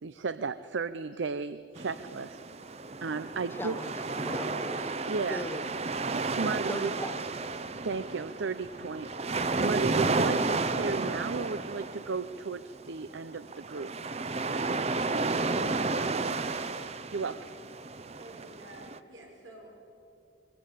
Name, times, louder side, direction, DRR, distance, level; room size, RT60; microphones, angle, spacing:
voice 1, 0.0-2.4 3.0-3.8 5.1-5.5 6.1-6.9 7.8-13.9 17.1-17.5, right 4 dB, 75° right, 14 dB, 0.6 m, -34 dB
sound 1, 1.7-19.0, right 3 dB, 35° right, 0.7 m, -32 dB
voice 2, 3.5-4.9 5.3-5.7 6.7-7.2, left 1 dB, 10° left, 7 dB, 1.5 m, -38 dB
voice 3, 18.2-19.7, right 1 dB, 90° right, 0 dB, 5.8 m, -50 dB
24.0 x 22.5 x 8.4 m, 2.9 s
head